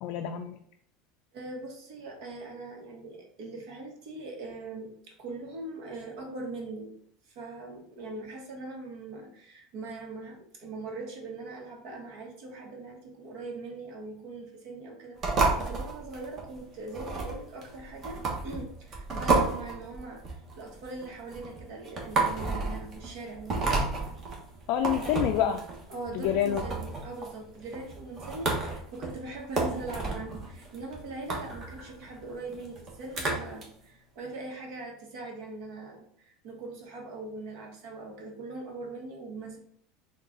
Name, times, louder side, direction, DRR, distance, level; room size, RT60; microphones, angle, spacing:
voice 1, 0.0-0.6 24.7-25.6 26.1-26.6, left 10 dB, 60° left, 5 dB, 0.3 m, -27 dB
voice 2, 1.3-7.0 7.3-23.6 25.9-39.6, right 2 dB, 70° right, 1 dB, 1.1 m, -41 dB
sound 1, 15.2-33.6, right 3 dB, 35° right, 1.1 m, -32 dB
3.7 x 2.4 x 3.7 m, 0.65 s
supercardioid pair, 130°, 0 cm